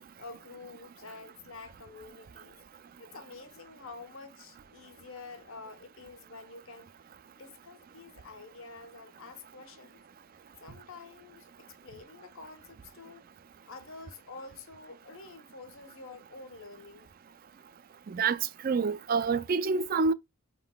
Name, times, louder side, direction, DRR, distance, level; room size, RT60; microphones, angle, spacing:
voice 1, 0.2-2.6 3.0-6.9 7.3-10.0 10.6-13.2 13.6-17.1, left 3 dB, 65° left, 1.1 m, -48 dB
voice 2, 18.1-20.1, right 5 dB, 40° right, 0.3 m, -27 dB
5.4 x 3.7 x 2.2 m
head